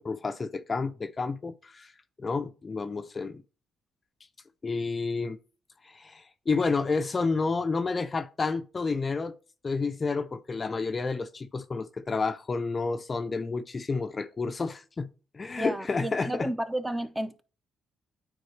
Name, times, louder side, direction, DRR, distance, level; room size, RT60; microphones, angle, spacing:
voice 1, 0.0-1.9 2.2-3.4 4.6-5.4 5.8-9.4 9.6-15.1 15.3-16.5, left 4 dB, 30° left, 0.5 m, -30 dB
voice 2, 15.6-17.4, right 1 dB, 10° right, 0.8 m, -32 dB
9.4 x 3.9 x 3.3 m
cardioid pair, 90°, 0 cm